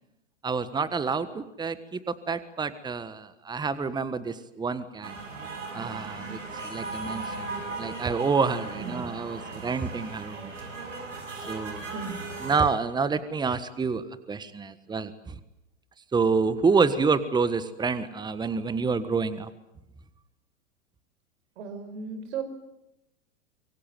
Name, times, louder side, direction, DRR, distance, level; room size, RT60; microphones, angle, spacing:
voice 1, 0.4-5.1 5.7-10.5 11.5-11.9 12.4-15.4 16.1-19.5, right 4 dB, 10° right, 14 dB, 1.4 m, -28 dB
sound 1, 5.0-12.6, right 3 dB, 85° right, 7.0 m, -37 dB
voice 2, 21.6-22.4, right 6 dB, 60° right, 9 dB, 5.2 m, -35 dB
24.5 x 24.0 x 9.2 m, 0.88 s
hypercardioid pair, 105°, 37 cm